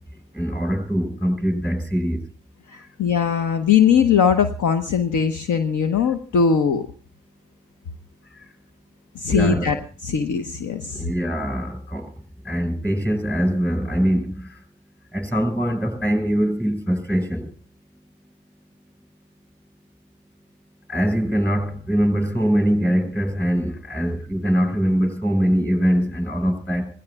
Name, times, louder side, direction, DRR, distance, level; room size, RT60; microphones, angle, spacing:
voice 1, 0.4-2.2 9.3-9.8 10.9-12.0 12.5-14.5 15.1-17.4 20.9-26.9, equal, 5° left, 5.6 m, -22 dB
voice 2, 2.7-6.9 9.1-9.8 10.0-11.0, left 7 dB, 50° left, 1.2 m, -20 dB
26.0 x 17.5 x 2.4 m
figure-of-eight pair, 45°, 40 cm